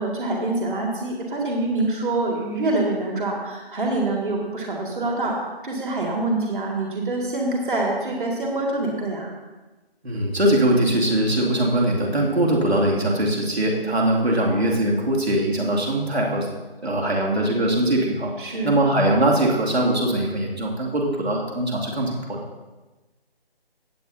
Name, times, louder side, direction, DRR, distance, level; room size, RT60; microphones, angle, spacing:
voice 1, 0.0-5.4 5.6-9.3 14.4-14.6 18.4-18.8, right 2 dB, 55° right, -1 dB, 2.1 m, -25 dB
voice 2, 10.0-16.5 16.8-18.3 18.6-22.4, right 1 dB, 90° right, -2 dB, 2.5 m, -21 dB
17.0 x 8.1 x 2.7 m, 1.2 s
figure-of-eight pair, 160°, 31 cm